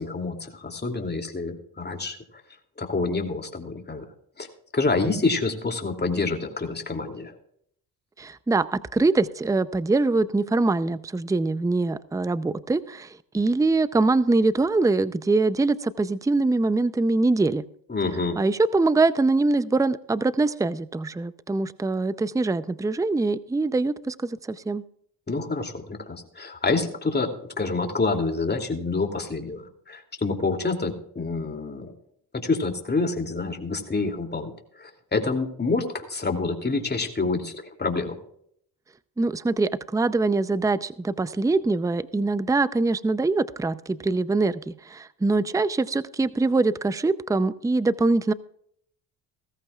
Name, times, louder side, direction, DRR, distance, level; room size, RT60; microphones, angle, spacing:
voice 1, 0.0-2.2 2.8-4.0 4.4-4.5 4.7-7.3 17.9-18.4 25.3-29.6 29.9-31.9 32.4-34.5 34.8-37.5 37.8-38.2, left 3 dB, 25° left, 4 dB, 2.8 m, -27 dB
voice 2, 8.2-13.1 13.3-17.6 18.4-24.8 39.2-48.3, right 3 dB, 10° right, 15 dB, 0.6 m, -23 dB
17.5 x 14.5 x 2.4 m, 0.68 s
supercardioid pair, 65°, 42 cm